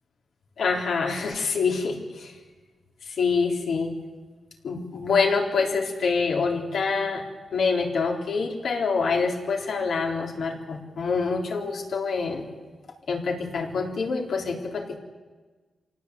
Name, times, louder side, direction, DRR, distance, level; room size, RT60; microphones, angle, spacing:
voice 1, 0.6-2.3 3.1-3.9 4.6-7.2 7.5-12.5 13.1-15.0, left 4 dB, 70° left, 1 dB, 3.8 m, -26 dB
26.0 x 19.0 x 8.5 m, 1.3 s
wide cardioid pair, 180°, 0 cm